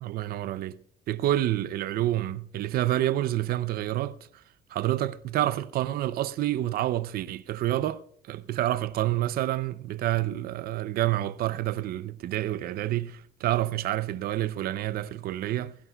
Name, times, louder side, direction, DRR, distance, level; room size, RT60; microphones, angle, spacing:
voice 1, 0.0-0.8 1.1-4.4 4.7-15.7, right 14 dB, 65° right, 0.6 m, -28 dB
16.5 x 15.5 x 2.3 m
cardioid pair, 110°, 17 cm